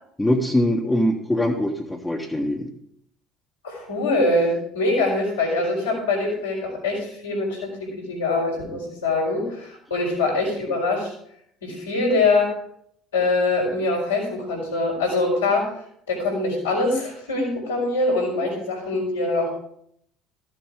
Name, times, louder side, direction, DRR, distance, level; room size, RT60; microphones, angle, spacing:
voice 1, 0.2-2.7, left 1 dB, 10° left, -2 dB, 1.4 m, -22 dB
voice 2, 3.6-11.1 11.6-12.5 13.1-15.7 16.1-19.6, left 2 dB, 90° left, -4 dB, 4.4 m, -23 dB
14.0 x 7.6 x 3.7 m, 0.71 s
hypercardioid pair, 60°, 0 cm